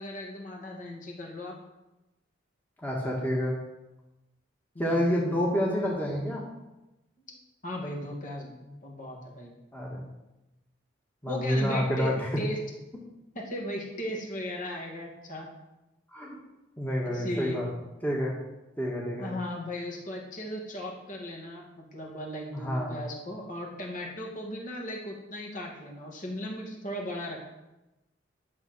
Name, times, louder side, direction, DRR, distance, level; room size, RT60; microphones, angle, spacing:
voice 1, 0.0-1.5 4.7-5.3 7.3-7.4 7.6-9.5 11.3-12.6 13.3-15.5 17.0-17.6 19.2-27.5, left 1 dB, 45° left, 0 dB, 2.4 m, -37 dB
voice 2, 2.8-3.6 4.8-6.4 9.7-10.1 11.2-12.3 16.1-16.4 16.8-17.7 18.0-18.3 18.8-19.3 22.5-23.0, equal, 10° left, -4 dB, 1.9 m, -28 dB
12.0 x 7.0 x 6.3 m, 0.98 s
head